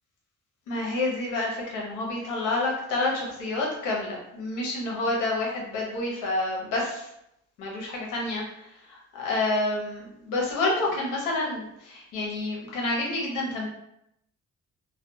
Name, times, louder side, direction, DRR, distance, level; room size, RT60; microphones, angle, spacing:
voice 1, 0.7-7.1 7.6-13.7, left 2 dB, 85° left, -2 dB, 0.8 m, -29 dB
2.4 x 2.2 x 2.6 m, 0.80 s
cardioid pair, 90°, 30 cm